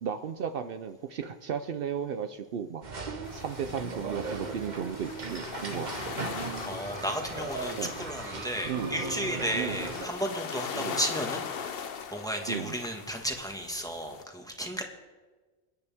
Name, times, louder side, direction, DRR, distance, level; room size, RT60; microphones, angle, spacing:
voice 1, 0.0-2.8 3.3-6.2 7.8-7.9 8.6-8.9 9.5-9.8 10.7-11.0 12.5-12.8, right 7 dB, 65° right, 9 dB, 0.8 m, -35 dB
sound 1, 2.8-10.1, right 3 dB, 45° right, 1.1 m, -37 dB
sound 2, 3.2-14.2, left 7 dB, 65° left, 1.0 m, -40 dB
voice 2, 6.6-11.4 12.1-14.8, equal, 5° left, 2 dB, 1.5 m, -33 dB
28.5 x 9.7 x 3.5 m, 1.3 s
omnidirectional pair, 1.1 m